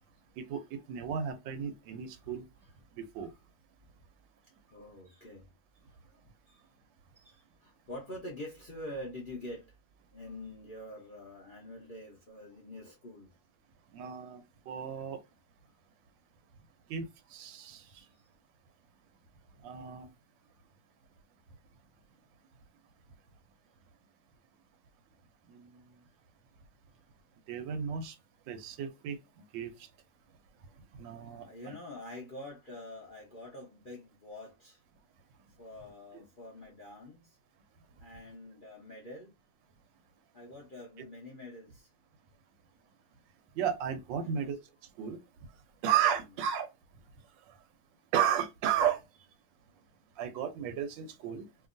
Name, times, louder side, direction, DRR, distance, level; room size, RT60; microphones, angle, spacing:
voice 1, 0.9-2.4 3.0-3.3 13.9-15.2 16.9-17.0 17.3-18.0 19.6-20.1 25.5-25.7 27.5-28.1 28.5-29.2 29.5-29.7 31.0-31.8 36.1-36.2 43.6-44.6 45.0-45.2 45.8-46.7 48.1-49.0 50.2-51.4, right 9 dB, 85° right, 1.3 m, -33 dB
voice 2, 4.7-5.5 5.8-6.2 6.5-6.7 7.2-9.8 10.1-13.3 18.0-18.2 31.4-34.8 35.6-37.4 38.0-39.3 40.3-41.9 44.2-44.5, left 1 dB, 45° left, 0.7 m, -46 dB
2.8 x 2.6 x 2.5 m
omnidirectional pair, 1.9 m